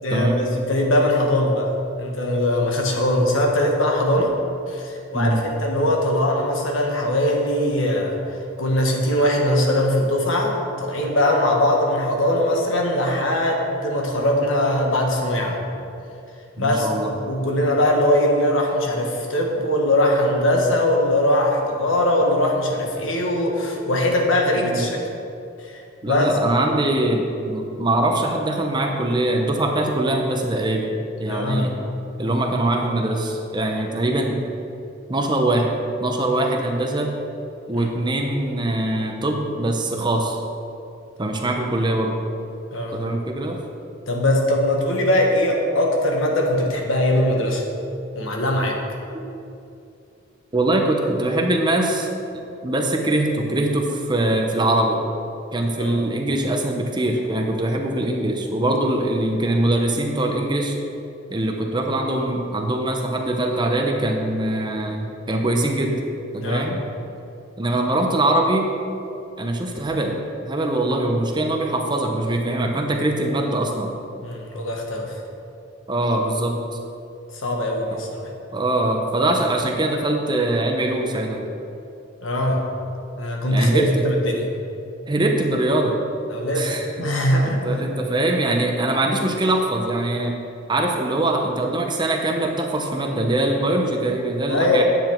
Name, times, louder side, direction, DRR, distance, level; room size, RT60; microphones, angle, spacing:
voice 1, 0.0-1.7 2.0-4.3 4.7-8.2 8.6-15.6 16.6-25.0 25.6-26.2 31.3-31.6 37.7-37.9 42.7-43.0 44.1-47.6 48.1-48.8 55.8-56.0 66.4-66.7 74.2-75.1 77.4-78.2 82.2-82.6 83.2-84.5 86.3-87.6 94.5-94.8, left 1 dB, 80° left, 0 dB, 1.4 m, -21 dB
voice 2, 16.6-17.1 24.6-24.8 26.0-30.9 31.2-31.7 32.2-34.4 35.1-35.7 36.0-37.1 37.7-40.4 41.2-42.2 42.9-43.6 49.1-49.3 50.5-52.1 52.6-55.0 55.5-60.8 61.3-66.0 66.3-66.8 67.6-68.7 69.4-70.2 70.4-73.9 75.9-76.6 77.9-78.0 78.5-81.4 83.5-84.0 85.1-86.0 86.5-87.1 87.6-90.4 90.7-94.8, right 1 dB, 25° right, 2 dB, 0.9 m, -22 dB
9.2 x 7.8 x 4.5 m, 2.6 s
head